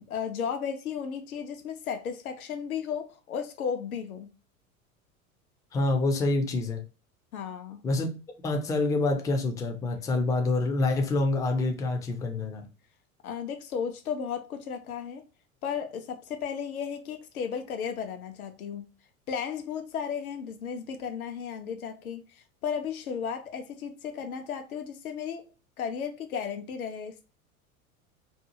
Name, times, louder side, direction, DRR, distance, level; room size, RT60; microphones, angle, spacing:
voice 1, 0.1-4.3 7.3-7.8 13.2-15.2 15.6-18.9 19.3-25.5 25.8-27.3, left 7 dB, 75° left, 0.8 m, -34 dB
voice 2, 5.7-6.8 7.8-8.1 8.4-12.6, left 2 dB, 10° left, 0.4 m, -27 dB
2.7 x 2.3 x 2.8 m
hypercardioid pair, 85°, 43 cm